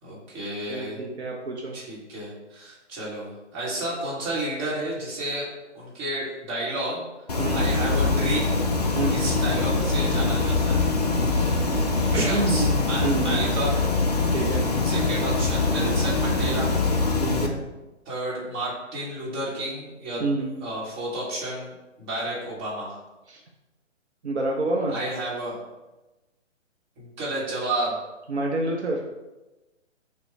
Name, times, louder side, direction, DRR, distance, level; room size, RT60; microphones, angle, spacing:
voice 1, 0.0-1.0 1.7-5.5 5.7-7.0 7.5-8.6 9.1-10.8 12.0-13.8 14.8-16.7 18.1-20.2 20.6-21.7 22.0-23.0 24.9-25.6 27.0-28.0, right 1 dB, 20° right, -6 dB, 1.2 m, -31 dB
voice 2, 0.7-1.7 7.4-7.7 8.9-9.3 11.3-11.5 12.1-13.4 14.3-14.7 17.2-17.6 20.2-20.5 23.3-23.4 24.2-25.0 28.3-29.0, right 2 dB, 65° right, -1 dB, 0.7 m, -28 dB
sound 1, 7.3-17.5, left 3 dB, 35° left, 0.4 m, -23 dB
6.3 x 2.3 x 3.2 m, 1.1 s
figure-of-eight pair, 130°, 37 cm